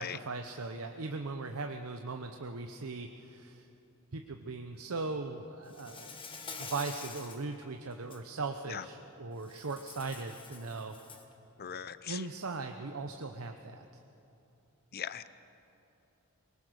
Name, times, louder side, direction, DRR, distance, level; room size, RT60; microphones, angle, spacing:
voice 1, 0.0-3.7 4.1-6.1 6.6-11.0 12.1-14.0, right 3 dB, 75° right, 6 dB, 0.8 m, -39 dB
Insect, 5.7-7.4 7.9-8.2 9.4-11.3, left 4 dB, 25° left, 1.5 m, -46 dB
voice 2, 11.6-12.2 14.9-15.3, left 8 dB, 45° left, 14 dB, 0.7 m, -39 dB
23.0 x 20.0 x 6.4 m, 2.9 s
head